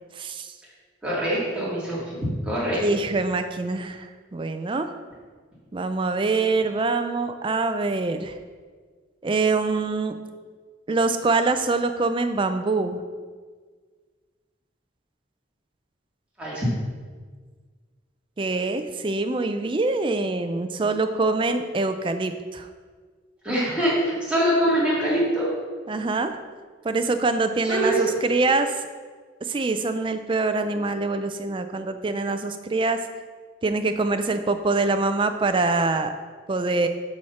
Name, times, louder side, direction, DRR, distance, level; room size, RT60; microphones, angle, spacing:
voice 1, 0.2-0.5 2.7-4.9 5.7-8.4 9.2-10.2 10.9-13.0 18.4-22.7 25.9-26.4 26.8-28.8 29.4-33.0 33.6-36.1 36.5-36.9, right 3 dB, 25° right, 8 dB, 0.4 m, -24 dB
voice 2, 1.0-2.8 16.4-16.7 23.4-25.5 27.6-28.1, right 1 dB, 5° right, -8 dB, 2.5 m, -24 dB
7.6 x 4.3 x 5.7 m, 1.5 s
head